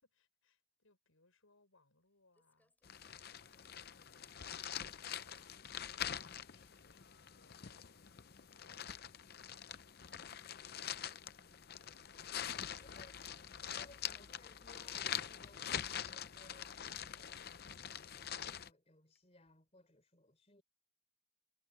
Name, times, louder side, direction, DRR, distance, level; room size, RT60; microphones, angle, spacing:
voice 1, 0.0-2.7 3.5-10.2, left 2 dB, 75° left, 6.0 m, -73 dB
Crumpling crinkling, 2.1-2.2 2.3-7.2 7.5-10.6 10.9-14.5 14.8-16.3 16.8-17.1 18.3-18.6 19.1-19.2 19.5-19.6 19.8-19.9, left 2 dB, 10° left, 6.6 m, -80 dB
sound 1, 2.8-18.7, left 9 dB, 45° left, 0.6 m, -45 dB
voice 2, 11.3-11.7 12.8-13.3 13.7-17.6 18.2-20.6, left 1 dB, 30° left, 3.7 m, -64 dB
head